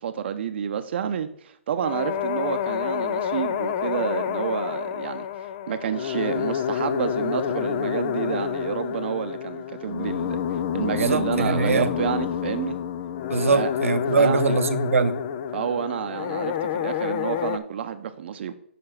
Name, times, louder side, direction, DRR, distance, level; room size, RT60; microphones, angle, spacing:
voice 1, 0.0-12.8 13.5-13.7 14.1-14.6 15.5-18.5, right 8 dB, 55° right, 9 dB, 0.7 m, -29 dB
sound 1, 1.8-17.6, left 8 dB, 40° left, 0.5 m, -28 dB
voice 2, 11.1-11.9 13.3-15.2, right 4 dB, 85° right, 10 dB, 0.8 m, -22 dB
6.8 x 5.0 x 5.7 m, 0.68 s
hypercardioid pair, 145°, 7 cm